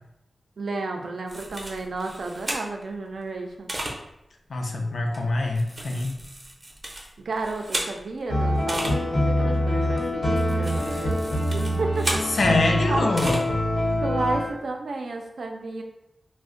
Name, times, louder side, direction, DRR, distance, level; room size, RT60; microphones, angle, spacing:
voice 1, 0.6-3.7 6.9-12.2 12.8-13.1 14.0-15.8, right 3 dB, 80° right, 3 dB, 0.4 m, -32 dB
sound 1, 1.3-2.9 3.7-3.9 5.1-8.2 8.7-8.9 10.0-12.3 13.2-13.4, right 1 dB, 30° right, 0.5 m, -33 dB
voice 2, 4.5-6.2 12.3-13.5, left 2 dB, 65° left, 2 dB, 0.4 m, -24 dB
sound 2, 8.3-14.5, left 1 dB, 90° left, 0.8 m, -25 dB
2.5 x 2.1 x 3.6 m, 0.88 s
wide cardioid pair, 120°, 0 cm